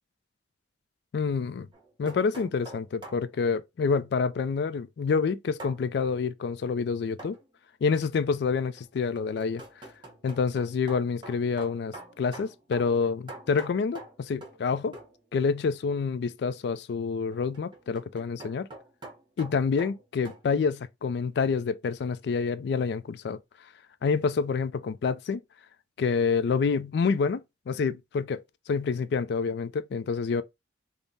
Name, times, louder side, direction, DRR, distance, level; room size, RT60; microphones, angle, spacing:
voice 1, 1.1-1.7 2.0-7.4 7.8-9.9 10.2-15.0 15.3-18.7 19.4-23.4 24.0-25.4 26.0-30.4, left 5 dB, 60° left, 0.3 m, -28 dB
sound 1, 1.7-3.3 5.6-5.8 7.2-7.5 8.8-14.7 14.9-15.2 17.3-20.4, right 2 dB, 25° right, 0.8 m, -46 dB
3.5 x 2.0 x 4.0 m
head